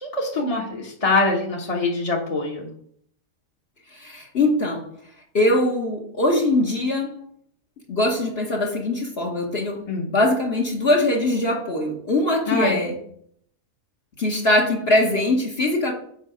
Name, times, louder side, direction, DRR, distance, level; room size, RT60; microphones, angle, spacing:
voice 1, 0.0-2.7 9.9-10.1 12.5-12.8, left 3 dB, 30° left, -2 dB, 1.1 m, -24 dB
voice 2, 3.9-4.9 5.3-7.1 7.9-9.8 10.1-13.0 14.2-15.9, left 1 dB, 50° left, -2 dB, 1.4 m, -22 dB
7.5 x 5.0 x 5.0 m, 0.65 s
omnidirectional pair, 1.4 m